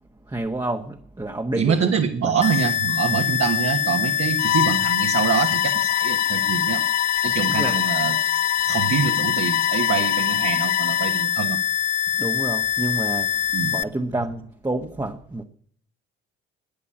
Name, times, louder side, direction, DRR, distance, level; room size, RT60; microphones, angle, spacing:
voice 1, 0.3-1.9 2.2-2.4 7.5-7.8 12.2-13.3 13.7-15.4, right 2 dB, 10° right, 1.3 m, -28 dB
voice 2, 1.6-6.8 7.2-8.2 8.7-11.6 13.5-13.7, right 6 dB, 50° right, 1.5 m, -25 dB
sound 1, 2.4-13.8, left 11 dB, 20° left, 0.8 m, -24 dB
Bowed string instrument, 4.4-11.3, left 15 dB, 50° left, 0.5 m, -26 dB
12.0 x 9.9 x 8.6 m
hypercardioid pair, 50°, 33 cm